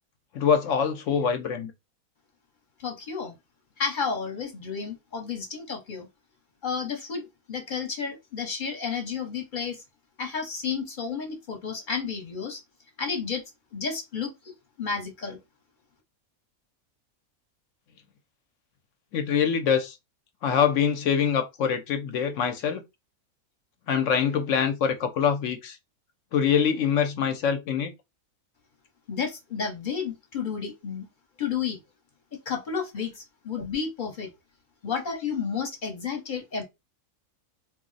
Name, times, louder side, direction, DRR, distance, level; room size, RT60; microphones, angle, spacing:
voice 1, 0.3-1.7 19.1-20.0 20.4-22.8 23.9-25.8 26.3-27.9, left 7 dB, 70° left, 0.8 m, -24 dB
voice 2, 2.8-3.4 3.8-6.1 6.6-9.8 10.2-12.6 13.0-13.4 13.7-15.4 29.1-31.1 31.4-31.8 32.5-34.3 34.8-36.6, left 6 dB, 40° left, 0.8 m, -31 dB
2.4 x 2.0 x 3.8 m
omnidirectional pair, 1.5 m